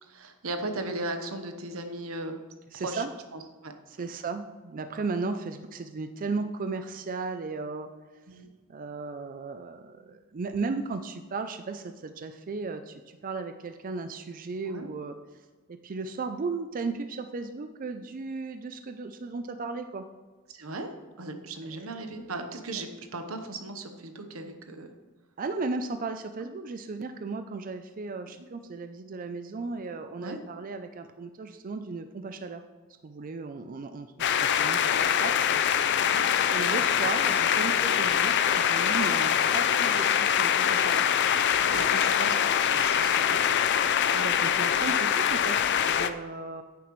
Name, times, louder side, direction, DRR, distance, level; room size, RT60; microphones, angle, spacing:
voice 1, 0.0-2.4 2.7-3.0 3.3-3.7 4.0-4.1 8.3-8.5 14.7-14.9 20.5-20.9 21.2-24.9 30.2-30.4 34.9-35.4 36.0-36.3 41.7-43.7, right 2 dB, 85° right, 6 dB, 1.0 m, -37 dB
voice 2, 2.7-3.1 3.9-7.9 8.7-15.2 15.7-20.1 25.4-32.6 33.0-35.3 36.5-41.3 44.1-46.6, right 4 dB, 40° right, 8 dB, 0.4 m, -35 dB
sound 1, 34.2-46.1, left 9 dB, 55° left, 0.4 m, -24 dB
9.8 x 9.2 x 3.1 m, 1.3 s
head